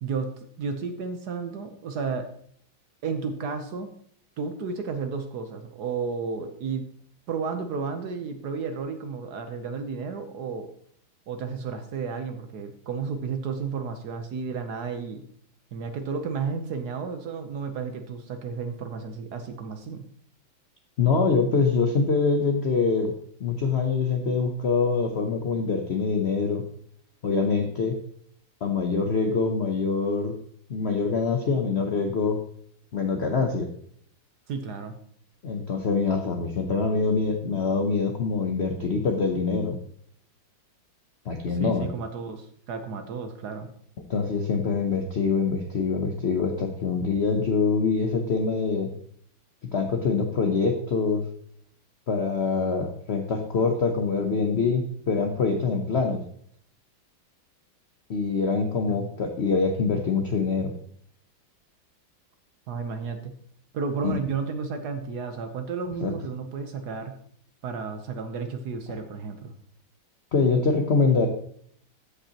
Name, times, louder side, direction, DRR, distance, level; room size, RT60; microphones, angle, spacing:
voice 1, 0.0-2.3 3.0-3.9 4.4-6.8 7.3-10.7 11.3-15.2 15.7-20.0 34.5-34.9 41.5-43.7 58.9-59.1 62.7-63.3 63.7-67.2 67.6-69.5, right 5 dB, 65° right, 7 dB, 1.2 m, -32 dB
voice 2, 21.0-23.1 23.4-26.6 27.2-28.0 28.6-30.3 30.7-32.4 32.9-33.7 35.4-39.8 41.3-41.9 44.1-48.9 49.7-51.3 52.1-56.2 58.1-60.7 64.0-64.1 66.0-66.1 70.3-71.3, left 4 dB, 70° left, 4 dB, 0.6 m, -24 dB
14.5 x 5.4 x 2.9 m, 0.63 s
omnidirectional pair, 2.2 m